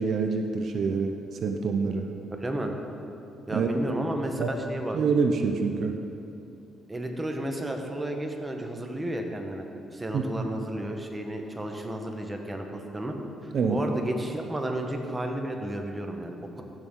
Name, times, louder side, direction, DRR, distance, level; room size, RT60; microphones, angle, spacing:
voice 1, 0.0-2.1 3.5-3.7 4.4-4.5 4.9-5.9 10.1-10.5 13.5-13.8, right 5 dB, 60° right, 4 dB, 0.6 m, -26 dB
voice 2, 2.4-2.7 3.5-5.0 6.9-9.6 9.9-13.2 13.4-16.6, right 1 dB, 15° right, 3 dB, 1.1 m, -32 dB
15.0 x 6.4 x 3.8 m, 2.7 s
cardioid pair, 90°, 0 cm